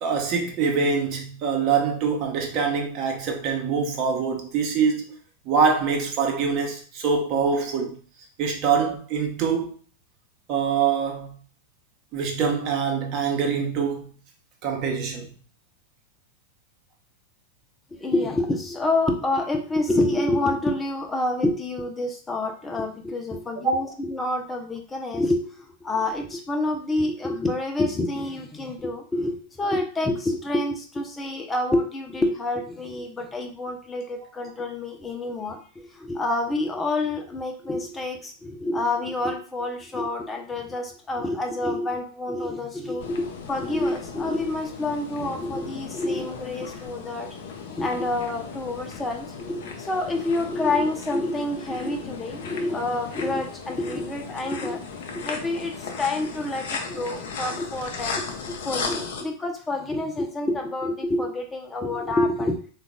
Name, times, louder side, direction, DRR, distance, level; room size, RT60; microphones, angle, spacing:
voice 1, 0.0-5.1 5.4-8.0 8.4-9.7 10.5-11.4 12.1-14.0 14.6-15.3 23.6-23.7, right 5 dB, 40° right, 1.0 m, -24 dB
voice 2, 17.9-25.5 25.8-47.4 47.7-54.8 55.1-62.6, left 2 dB, 15° left, 0.8 m, -27 dB
sound 1, 43.0-59.2, left 5 dB, 55° left, 0.6 m, -36 dB
3.8 x 2.5 x 3.6 m
figure-of-eight pair, 90°, 0 cm